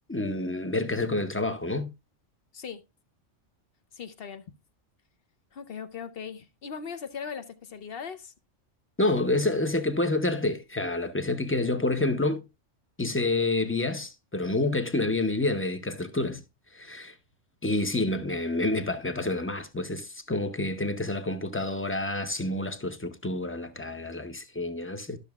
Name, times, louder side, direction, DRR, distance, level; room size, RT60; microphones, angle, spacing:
voice 1, 0.1-1.9 9.0-12.4 13.0-16.4 16.7-17.2 17.6-25.2, left 2 dB, 15° left, 0.5 m, -28 dB
voice 2, 3.9-4.4 5.5-8.3, left 6 dB, 55° left, 0.9 m, -39 dB
12.5 x 6.5 x 2.3 m
omnidirectional pair, 1.3 m